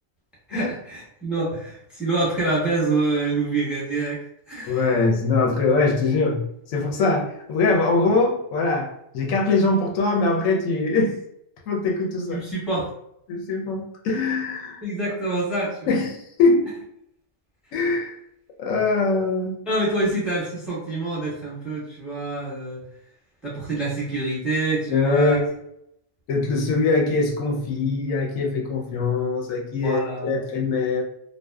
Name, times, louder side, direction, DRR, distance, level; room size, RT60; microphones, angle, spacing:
voice 1, 0.5-4.2 4.5-4.9 12.3-12.9 14.8-15.9 19.7-22.8 23.4-25.4 29.8-30.4, right 2 dB, ahead, -7 dB, 0.8 m, -26 dB
voice 2, 4.7-11.2 11.7-12.4 13.3-14.8 15.9-16.7 17.7-18.1 18.6-19.6 24.9-25.5 26.3-31.0, left 3 dB, 85° left, 0 dB, 1.0 m, -22 dB
2.5 x 2.2 x 2.2 m, 0.76 s
omnidirectional pair, 1.4 m